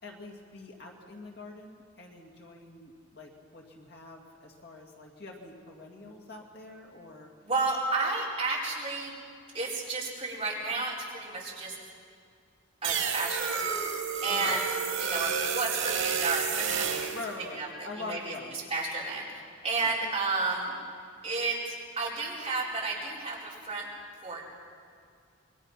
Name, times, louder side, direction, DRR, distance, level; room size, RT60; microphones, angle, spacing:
voice 1, 0.0-7.3 14.3-14.6 17.1-18.6 19.8-20.0, left 3 dB, 50° left, 0 dB, 2.3 m, -44 dB
voice 2, 7.4-9.1 9.5-11.8 12.8-13.7 14.2-14.7 15.0-17.1 17.5-18.3 18.7-20.8 21.2-23.9 24.2-24.5, right 3 dB, 25° right, -6 dB, 4.7 m, -32 dB
sound 1, 12.8-17.2, right 7 dB, 75° right, 2.9 m, -30 dB
27.0 x 22.0 x 5.8 m, 2.3 s
head